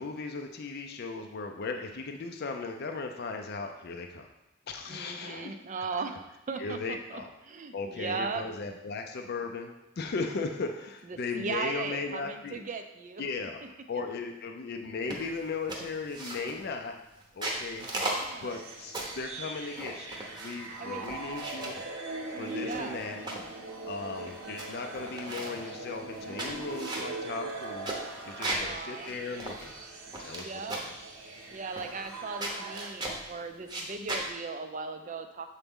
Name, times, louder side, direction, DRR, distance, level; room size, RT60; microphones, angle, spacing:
voice 1, 0.0-4.3 4.7-5.5 6.6-7.3 7.7-12.6 13.2-13.6 13.9-16.9 17.3-17.9 18.4-21.8 22.4-23.2 23.9-28.0 28.2-29.7 30.2-30.8, left 4 dB, 50° left, 4 dB, 0.4 m, -37 dB
voice 2, 4.9-8.4 11.0-13.2 17.9-18.6 20.8-21.1 22.6-23.1 28.4-29.1 30.3-30.8 31.5-35.5, right 4 dB, 40° right, 7 dB, 0.4 m, -38 dB
sound 1, 15.1-15.4 15.7-16.7 17.2-19.2 19.7-20.7 21.0-21.8 22.5-23.5 24.0-24.1 24.3-24.7 24.9-25.6 26.1-28.7 29.1-29.2 29.4-30.4 30.7-31.0 31.8-32.1 32.4-33.2 33.6-34.3, right 1 dB, 20° right, 0.8 m, -36 dB
sound 2, 18.5-32.9, right 3 dB, 85° right, 0.9 m, -41 dB
6.9 x 4.0 x 3.6 m, 0.95 s
head